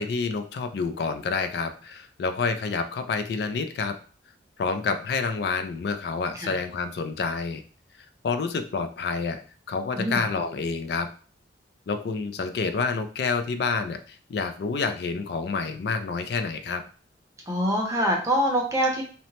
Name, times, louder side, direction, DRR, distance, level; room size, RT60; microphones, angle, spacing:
voice 1, 0.0-3.9 4.6-7.6 8.2-9.4 9.7-11.1 11.9-16.8, left 4 dB, 60° left, 9 dB, 0.3 m, -28 dB
voice 2, 17.5-19.0, equal, 15° right, -1 dB, 0.6 m, -24 dB
2.8 x 2.0 x 2.8 m, 0.39 s
head